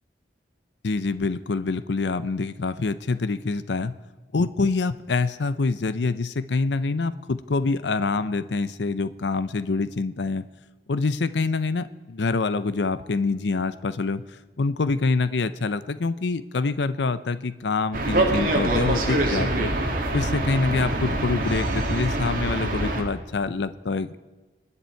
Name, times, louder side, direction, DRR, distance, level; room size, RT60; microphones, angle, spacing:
voice 1, 0.8-3.9 4.3-10.4 10.9-14.2 14.6-19.7 20.1-24.2, left 3 dB, 85° left, 14 dB, 0.6 m, -26 dB
sound 1, 17.9-23.0, right 1 dB, 50° right, 2.2 m, -24 dB
25.0 x 9.9 x 4.5 m, 1.3 s
head